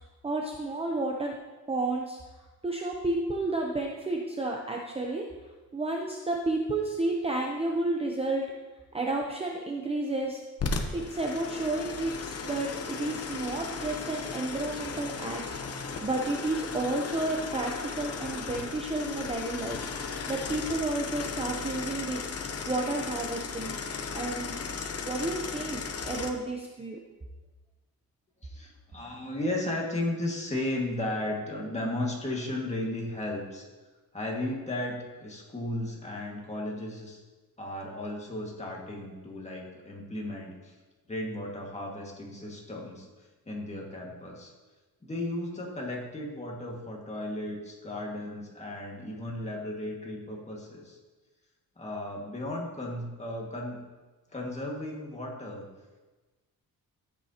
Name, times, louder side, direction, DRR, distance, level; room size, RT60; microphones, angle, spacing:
voice 1, 0.2-1.4 1.7-2.2 2.6-5.3 5.7-8.5 8.9-10.4 10.9-15.4 16.0-19.8 20.0-22.3 22.7-23.8 24.1-24.6 25.0-27.0, right 2 dB, 15° right, 0 dB, 0.7 m, -31 dB
sound 1, 10.6-26.3, left 5 dB, 40° left, 0.8 m, -36 dB
voice 2, 28.4-33.6 34.1-37.2 37.6-40.8 41.1-43.1 43.5-44.5 45.0-51.0 51.8-53.8 54.3-55.7, left 1 dB, 20° left, -2 dB, 1.9 m, -35 dB
13.5 x 8.4 x 2.9 m, 1.2 s
wide cardioid pair, 150°, 37 cm